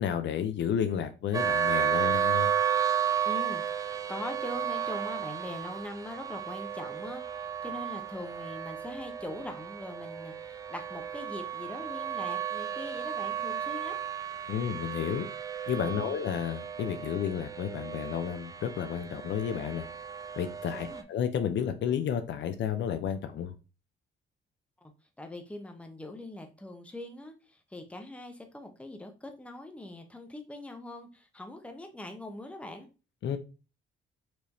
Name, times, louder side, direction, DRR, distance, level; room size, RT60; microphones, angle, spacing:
voice 1, 0.0-2.5 14.5-15.3 15.7-19.9 20.4-23.5 33.2-33.4, left 8 dB, 65° left, 9 dB, 0.6 m, -31 dB
sound 1, 1.3-21.0, right 8 dB, 15° right, 0.4 m, -33 dB
voice 2, 3.2-14.0 15.9-16.2 20.7-21.0 24.8-24.9 25.2-32.9, left 1 dB, 5° left, 4 dB, 0.8 m, -42 dB
4.5 x 3.0 x 2.7 m, 0.32 s
cardioid pair, 90°, 20 cm